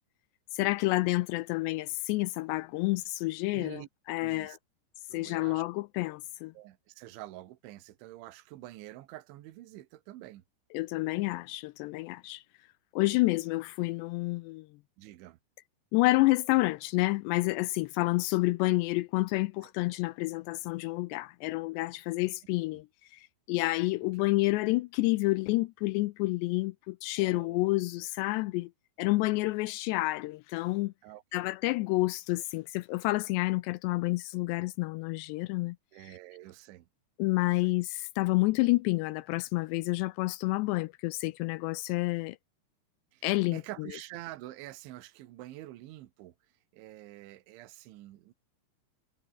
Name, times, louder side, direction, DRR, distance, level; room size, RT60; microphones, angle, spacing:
voice 1, 0.5-4.6 5.1-6.5 10.7-12.4 12.9-14.7 15.9-28.7 29.0-30.9 31.3-35.8 36.0-36.2 37.2-42.4 43.2-43.6, left 21 dB, 85° left, 2.5 m, -29 dB
voice 2, 3.5-3.9 4.2-4.6 5.1-5.6 6.6-10.4 15.0-15.4 19.6-19.7 24.0-24.3 27.2-27.7 31.0-31.5 35.9-36.9 37.6-37.7 43.1-43.3 43.5-46.4 46.7-48.3, right 15 dB, 80° right, 3.7 m, -47 dB
omnidirectional pair, 5.4 m